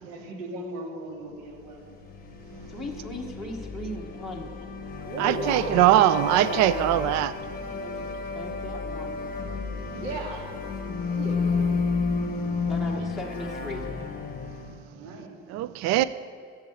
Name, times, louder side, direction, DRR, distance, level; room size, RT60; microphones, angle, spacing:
voice 1, 0.0-1.9 5.0-6.9 9.9-10.5 11.0-11.7 14.9-15.4, right 2 dB, 90° right, -1 dB, 2.9 m, -35 dB
sound 1, 1.9-14.9, left 4 dB, 30° left, 0.9 m, -32 dB
voice 2, 2.7-4.5 5.0-5.1 7.8-9.2 12.7-13.9, left 1 dB, ahead, -3 dB, 0.9 m, -38 dB
voice 3, 5.2-7.3 15.5-16.0, right 14 dB, 60° right, 16 dB, 0.4 m, -21 dB
12.0 x 7.9 x 7.7 m, 2.2 s
cardioid pair, 175°, 31 cm